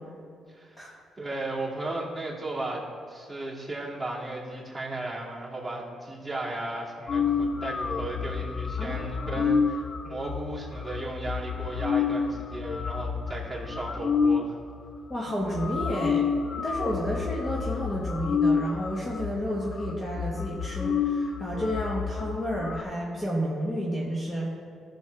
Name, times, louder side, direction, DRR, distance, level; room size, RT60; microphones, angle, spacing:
voice 1, 0.5-0.9 1.2-14.5, right 2 dB, 5° right, -6 dB, 2.6 m, -35 dB
sound 1, 7.1-14.5 15.1-15.2 15.4-22.8, left 6 dB, 35° left, 0.4 m, -29 dB
voice 2, 8.8-9.4 15.1-16.3 16.6-24.5, equal, 20° left, -4 dB, 1.5 m, -31 dB
14.0 x 6.5 x 3.5 m, 2.2 s
cardioid pair, 90°, 0 cm